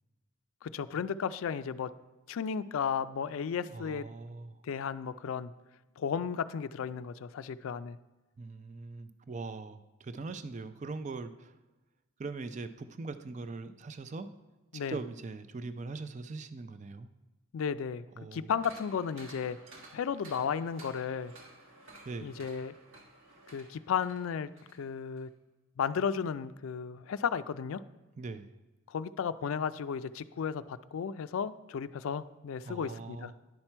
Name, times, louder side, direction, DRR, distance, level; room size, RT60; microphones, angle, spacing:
voice 1, 0.6-1.9 2.3-4.0 4.6-5.5 6.0-8.0 14.7-15.0 17.5-18.0 18.3-19.6 19.9-21.3 22.2-22.7 23.5-24.5 24.8-25.3 25.8-27.8 28.9-33.3, left 7 dB, 75° left, 14 dB, 0.3 m, -34 dB
voice 2, 3.7-4.6 8.4-11.5 12.2-14.3 14.7-17.1 18.2-18.5 22.0-22.3 28.2-28.5 32.6-33.3, right 3 dB, 35° right, 11 dB, 0.4 m, -41 dB
sound 1, 18.5-24.8 25.2-25.3, right 2 dB, 70° right, 1.4 m, -54 dB
10.5 x 5.9 x 4.4 m, 1.1 s
head